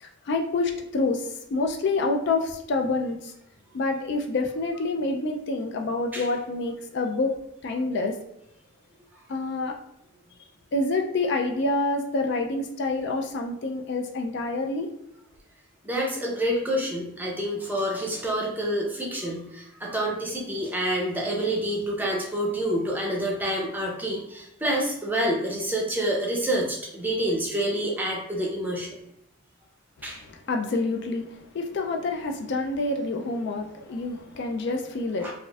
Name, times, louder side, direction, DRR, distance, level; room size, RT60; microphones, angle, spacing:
voice 1, 0.0-3.3 3.7-7.3 7.6-8.1 9.3-9.8 10.7-14.9 30.1-35.3, left 3 dB, 55° left, 3 dB, 0.3 m, -27 dB
voice 2, 15.8-29.0 30.0-30.2 35.2-35.3, right 1 dB, 10° right, -2 dB, 0.6 m, -28 dB
4.0 x 2.5 x 2.3 m, 0.81 s
head